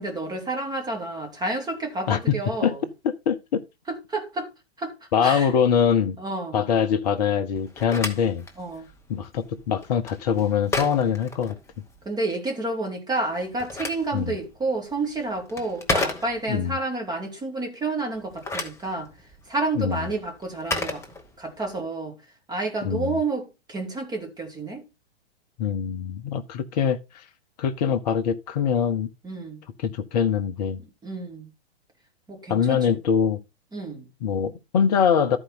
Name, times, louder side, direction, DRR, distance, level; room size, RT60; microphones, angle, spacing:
voice 1, 0.0-2.8 3.9-4.5 4.8-4.9 5.2-5.5 6.2-6.6 8.6-8.8 12.0-19.1 19.5-21.0 21.4-22.1 22.5-24.8 29.2-29.6 31.0-31.5 32.3-33.0 33.7-34.0, right 2 dB, 10° right, 2.8 m, -30 dB
voice 2, 2.1-2.4 2.6-2.7 3.0-3.6 5.1-6.2 6.5-8.4 9.1-11.6 14.1-14.4 16.5-16.8 19.7-20.1 22.8-23.2 25.6-27.0 27.6-29.1 29.8-30.8 32.5-33.4 34.2-35.4, left 7 dB, 40° left, 1.0 m, -23 dB
Telephone, 7.6-12.1 13.3-16.7 18.2-21.7, left 2 dB, 10° left, 1.1 m, -33 dB
13.0 x 4.9 x 4.1 m
figure-of-eight pair, 110°, 32 cm